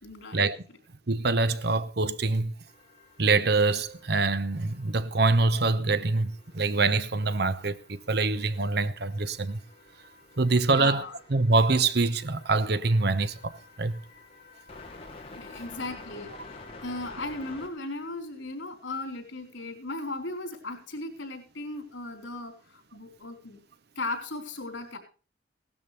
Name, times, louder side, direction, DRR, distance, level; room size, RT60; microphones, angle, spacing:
voice 1, 0.0-0.5 10.7-11.1 15.4-23.6 24.0-25.0, left 2 dB, 75° left, 4.1 m, -37 dB
voice 2, 1.1-2.5 3.2-9.6 10.4-11.0 11.3-14.0, right 3 dB, 55° right, 0.9 m, -25 dB
sound 1, 2.7-17.7, left 3 dB, 30° left, 2.9 m, -50 dB
17.5 x 12.5 x 3.3 m
head